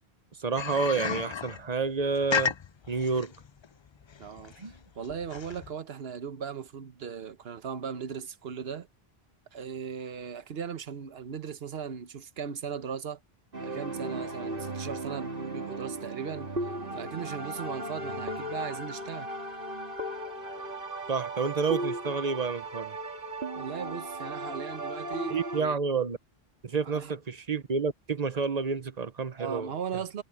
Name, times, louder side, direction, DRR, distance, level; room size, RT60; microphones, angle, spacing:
voice 1, 0.4-2.5 2.9-3.3 4.6-4.8 21.1-23.0 25.3-26.2 26.6-29.7, right 5 dB, 40° right, 1.1 m, -29 dB
sound 1, 0.6-5.7, left 7 dB, 50° left, 0.3 m, -33 dB
voice 2, 4.2-8.9 9.5-13.2 13.6-19.3 23.6-25.8 26.8-27.1 29.4-30.2, right 7 dB, 75° right, 1.2 m, -38 dB
sound 2, 13.5-25.6, right 1 dB, 60° right, 2.9 m, -36 dB
omnidirectional pair, 1.0 m